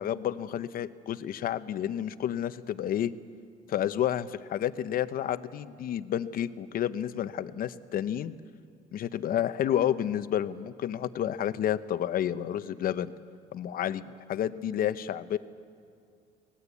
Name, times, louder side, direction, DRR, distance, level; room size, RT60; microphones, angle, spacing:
voice 1, 0.0-3.1 3.7-8.3 8.9-13.1 13.5-15.4, left 10 dB, 60° left, 13 dB, 0.9 m, -30 dB
23.5 x 18.5 x 8.3 m, 2.3 s
cardioid pair, 110°, 17 cm